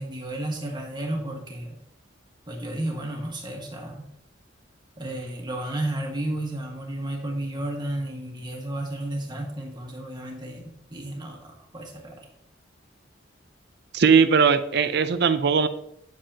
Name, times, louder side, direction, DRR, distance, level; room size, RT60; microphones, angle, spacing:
voice 1, 0.0-1.8 2.5-4.1 5.0-12.3, right 1 dB, 25° right, 1 dB, 1.6 m, -32 dB
voice 2, 13.9-15.7, right 6 dB, 60° right, 11 dB, 0.6 m, -19 dB
9.1 x 7.7 x 2.9 m, 0.77 s
head